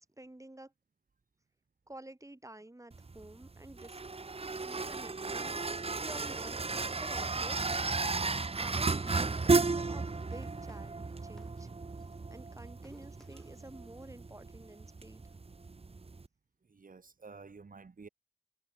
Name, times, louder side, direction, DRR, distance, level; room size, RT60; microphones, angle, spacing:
voice 1, 0.2-0.7 1.9-4.0 4.6-7.9 8.5-11.7 12.3-15.3, right 1 dB, 20° right, 2.3 m, -50 dB
sound 1, 2.9-16.3, right 3 dB, 45° right, 0.8 m, -34 dB
sound 2, 5.8-9.9 10.2-12.4 12.6-14.1, equal, 5° left, 5.7 m, -64 dB
voice 2, 16.6-18.1, right 4 dB, 80° right, 1.4 m, -51 dB
wide cardioid pair, 55°, 14 cm